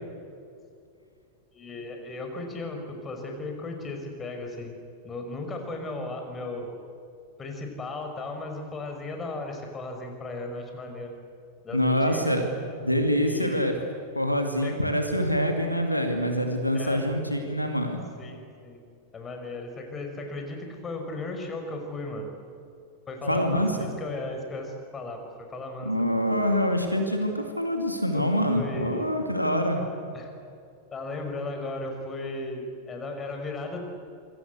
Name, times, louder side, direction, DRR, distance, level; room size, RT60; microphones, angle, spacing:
voice 1, 1.5-4.7 5.0-6.7 7.4-11.1 11.6-12.4 13.2-13.7 14.6-14.7 16.7-17.1 18.2-18.8 19.1-22.3 23.1-26.1 28.1-29.1 30.1-30.3 30.9-33.8, left 2 dB, 20° left, 4 dB, 5.4 m, -36 dB
voice 2, 11.7-12.4 12.8-13.7 14.1-18.0 23.3-23.8 25.8-29.8, equal, 90° left, 4 dB, 2.5 m, -25 dB
27.0 x 22.5 x 8.3 m, 2.5 s
figure-of-eight pair, 90°, 0 cm